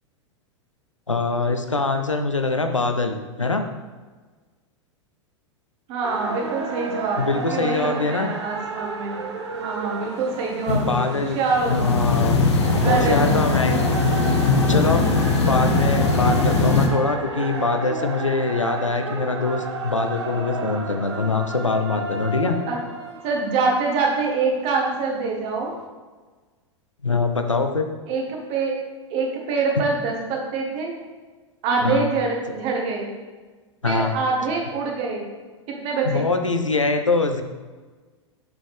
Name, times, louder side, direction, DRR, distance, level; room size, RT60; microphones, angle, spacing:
voice 1, 1.1-3.6 7.2-8.3 10.7-11.4 11.7-12.5 12.8-13.9 14.7-15.0 15.4-22.6 27.0-27.9 31.8-32.1 33.8-34.1 36.0-37.4, left 3 dB, 85° left, 6 dB, 0.6 m, -23 dB
voice 2, 5.9-9.2 9.5-11.9 12.8-13.4 22.7-22.8 23.2-25.7 28.1-28.8 29.1-30.9 31.6-33.1 33.8-35.3 35.7-36.3, right 4 dB, 40° right, 0 dB, 1.5 m, -25 dB
sound 1, 6.0-24.9 25.5-25.6, right 3 dB, 65° right, 0.9 m, -33 dB
sound 2, 10.7-11.0 11.5-16.9, left 3 dB, 60° left, 0.9 m, -20 dB
7.2 x 5.3 x 3.5 m, 1.4 s
figure-of-eight pair, 95°, 16 cm